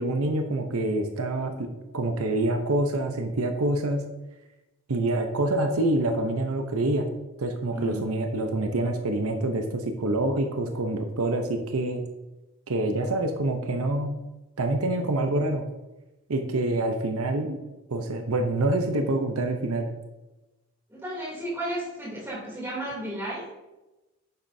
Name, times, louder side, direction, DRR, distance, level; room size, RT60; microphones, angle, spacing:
voice 1, 0.0-4.0 4.9-7.1 7.4-12.0 12.7-14.1 14.6-15.6 16.3-17.6 17.9-19.9, right 2 dB, 80° right, 5 dB, 0.8 m, -26 dB
voice 2, 7.7-8.0 20.9-23.5, right 1 dB, 10° right, -6 dB, 3.0 m, -33 dB
9.8 x 7.3 x 2.7 m, 1.0 s
head